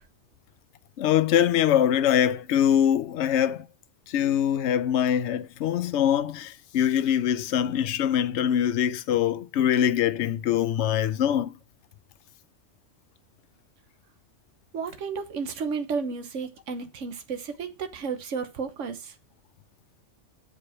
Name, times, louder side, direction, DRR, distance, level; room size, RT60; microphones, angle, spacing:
voice 1, 1.0-3.7 4.1-11.5, left 10 dB, 75° left, 0.9 m, -23 dB
voice 2, 14.7-19.1, right 5 dB, 85° right, 1.4 m, -32 dB
7.0 x 4.9 x 5.7 m
omnidirectional pair, 1.2 m